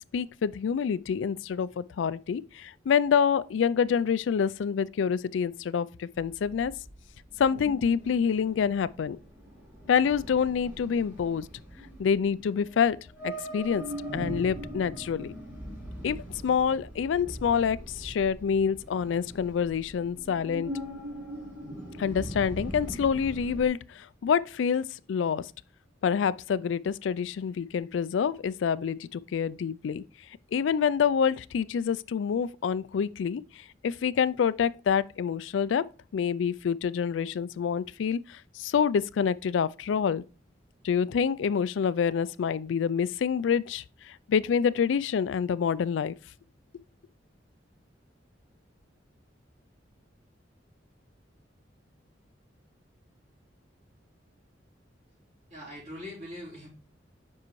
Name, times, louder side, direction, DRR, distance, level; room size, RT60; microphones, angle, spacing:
voice 1, 0.1-6.7 7.4-9.2 9.9-11.5 12.0-13.0 13.2-13.9 14.1-15.3 16.0-16.2 16.4-20.7 22.0-25.5 26.0-30.0 30.5-33.4 33.8-35.9 36.1-40.2 40.8-46.1, left 7 dB, 80° left, 0.3 m, -27 dB
sound 1, 6.1-23.7, equal, 10° right, 3.6 m, -41 dB
voice 2, 55.5-56.7, left 1 dB, 40° right, 3.8 m, -41 dB
7.4 x 5.6 x 3.1 m
head